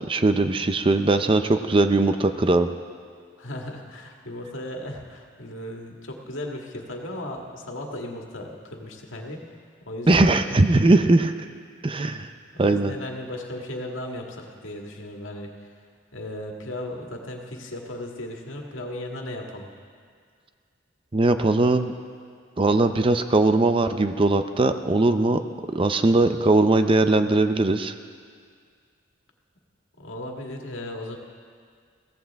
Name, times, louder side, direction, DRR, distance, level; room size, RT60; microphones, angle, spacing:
voice 1, 0.1-2.7 10.1-11.3 11.8-12.3 12.6-12.9 21.1-21.9 22.6-25.4 25.7-27.9, right 2 dB, 25° right, 9 dB, 0.5 m, -20 dB
voice 2, 3.4-9.6 9.9-10.6 12.5-15.7 16.1-19.7 30.0-31.2, left 1 dB, 80° left, 1 dB, 1.8 m, -36 dB
22.0 x 16.0 x 3.5 m, 2.1 s
head